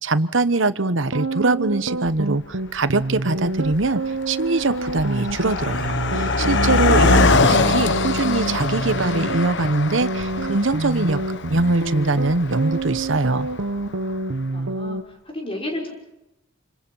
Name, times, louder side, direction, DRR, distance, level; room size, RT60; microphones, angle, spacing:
voice 1, 0.0-11.2 11.5-13.5, right 2 dB, 65° right, 13 dB, 1.1 m, -22 dB
sound 1, 1.1-15.0, right 2 dB, 90° right, 1.2 m, -28 dB
Car passing by, 2.0-2.1 2.9-3.2 3.5-13.9, left 3 dB, 60° left, 1.2 m, -23 dB
voice 2, 14.5-15.9, left 1 dB, 30° left, 0 dB, 5.4 m, -32 dB
28.5 x 26.0 x 5.7 m, 0.94 s
head